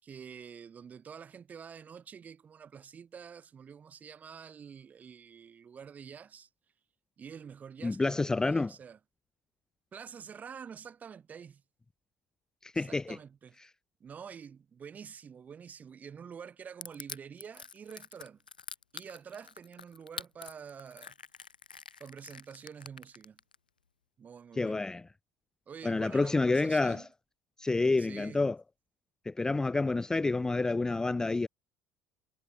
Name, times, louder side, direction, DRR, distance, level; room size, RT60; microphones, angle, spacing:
voice 1, 0.0-6.5 7.2-9.0 9.9-11.6 12.7-13.6 14.0-18.4 18.9-21.1 22.0-23.4 24.2-24.9 25.7-27.1 28.0-28.5, right 7 dB, 35° right, 6.7 m, -47 dB
voice 2, 7.8-8.7 12.6-13.0 24.6-25.0 25.8-27.0 27.6-28.6 29.3-31.5, left 3 dB, 15° left, 0.4 m, -28 dB
Crushing, 16.8-23.6, left 6 dB, 90° left, 1.7 m, -45 dB
hypercardioid pair, 65°, 5 cm